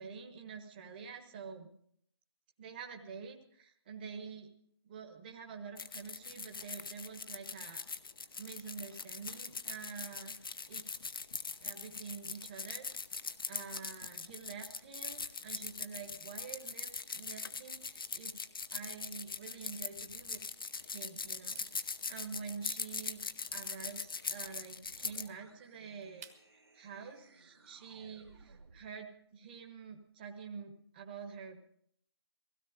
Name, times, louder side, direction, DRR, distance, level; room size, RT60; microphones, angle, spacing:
voice 1, 0.0-1.7 2.6-4.5 4.8-7.9 8.4-10.9 11.6-12.9 13.5-18.4 18.7-20.4 20.8-23.2 23.5-31.6, right 6 dB, 20° right, 3 dB, 1.3 m, -47 dB
sound 1, 5.8-25.3, left 5 dB, 55° left, 0.9 m, -41 dB
sound 2, 21.4-26.7, right 6 dB, 35° right, 1.5 m, -60 dB
sound 3, 24.8-29.0, right 3 dB, 65° right, 2.7 m, -61 dB
17.0 x 16.5 x 5.2 m, 0.67 s
figure-of-eight pair, 160°, 14 cm